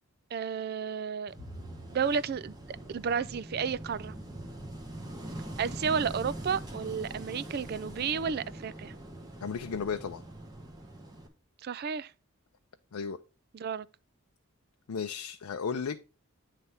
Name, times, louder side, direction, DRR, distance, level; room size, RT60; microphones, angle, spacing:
voice 1, 0.3-1.3 1.9-2.5 2.9-4.1 5.6-8.9 11.6-12.1 13.5-13.9, right 6 dB, 45° right, 0.3 m, -32 dB
Wind / Waves surf, 1.3-11.3, right 1 dB, 15° right, 1.1 m, -43 dB
Bowed string instrument, 1.4-7.7, right 1 dB, 65° right, 2.2 m, -55 dB
voice 2, 9.4-10.2 12.9-13.2 14.9-16.0, left 6 dB, 85° left, 0.5 m, -34 dB
9.4 x 3.3 x 5.5 m
head